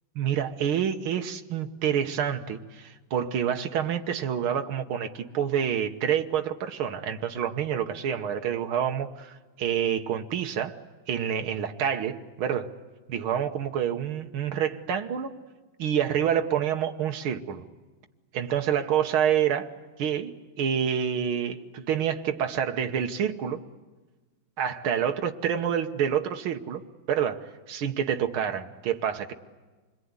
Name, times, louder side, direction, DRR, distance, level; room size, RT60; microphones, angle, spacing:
voice 1, 0.2-10.8 11.1-12.7 13.1-15.3 15.8-17.7 18.3-19.7 20.0-23.6 24.6-26.8 27.1-29.3, right 9 dB, 85° right, 5 dB, 2.0 m, -28 dB
28.0 x 21.5 x 9.7 m, 1.3 s
omnidirectional pair, 2.2 m